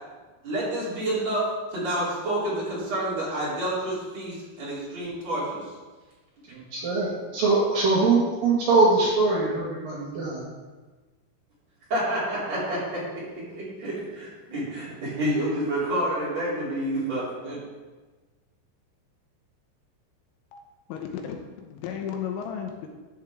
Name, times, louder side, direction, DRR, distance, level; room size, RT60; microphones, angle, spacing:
voice 1, 0.4-1.4 1.7-5.6 6.8-6.9 11.9-13.0 13.3-17.6, right 1 dB, 40° right, -8 dB, 4.0 m, -29 dB
voice 2, 6.5-10.4, right 3 dB, 60° right, -5 dB, 2.9 m, -22 dB
voice 3, 20.9-22.9, left 8 dB, 80° left, 3 dB, 3.2 m, -34 dB
12.5 x 8.0 x 3.6 m, 1.3 s
omnidirectional pair, 5.4 m